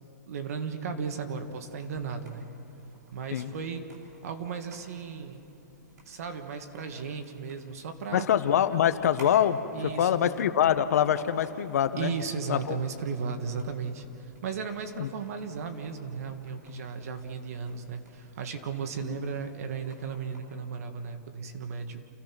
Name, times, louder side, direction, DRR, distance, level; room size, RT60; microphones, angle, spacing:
voice 1, 0.2-2.5 3.1-3.9 4.2-5.4 6.0-8.3 9.7-10.3 11.2-11.3 12.0-22.1, right 5 dB, 55° right, 6 dB, 1.7 m, -35 dB
sound 1, 1.0-20.4, right 1 dB, 85° right, 6.9 m, -55 dB
voice 2, 8.1-9.6 9.8-12.1 12.5-12.8 15.0-15.1, left 10 dB, 60° left, 11 dB, 1.0 m, -24 dB
29.0 x 16.0 x 6.0 m, 2.8 s
hypercardioid pair, 165°, 9 cm